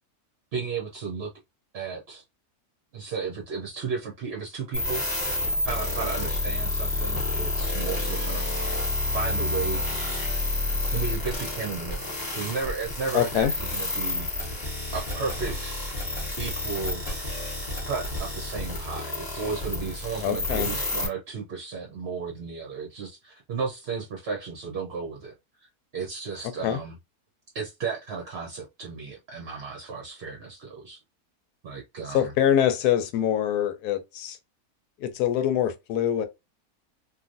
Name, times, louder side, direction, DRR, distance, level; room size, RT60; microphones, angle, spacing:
voice 1, 0.5-1.3 1.7-2.2 2.9-5.0 5.6-8.6 9.1-9.8 10.9-14.6 14.9-15.8 16.4-17.0 17.8-25.3 25.9-26.9 27.5-31.0 31.6-32.3, right 5 dB, 55° right, 0.8 m, -34 dB
sound 1, 4.7-21.1, left 2 dB, 20° left, 0.8 m, -29 dB
voice 2, 13.1-13.5 20.2-20.7 26.6-26.8 32.1-34.4 35.0-36.3, left 10 dB, 85° left, 1.1 m, -24 dB
3.2 x 2.5 x 2.5 m
omnidirectional pair, 1.6 m